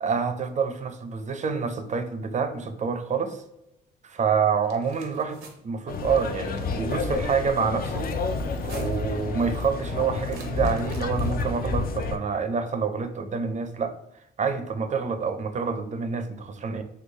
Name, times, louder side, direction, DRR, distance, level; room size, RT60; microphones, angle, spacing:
voice 1, 0.0-3.4 4.0-5.4 5.6-8.1 8.6-13.9 14.4-16.8, right 5 dB, 35° right, 8 dB, 0.5 m, -27 dB
sound 1, 4.5-5.6 6.3-6.9 8.4-9.1 10.2-11.6, right 5 dB, 85° right, 0.7 m, -48 dB
sound 2, 5.9-12.2, left 4 dB, 50° left, 0.4 m, -29 dB
3.2 x 2.3 x 3.5 m, 0.84 s
cardioid pair, 90°, 20 cm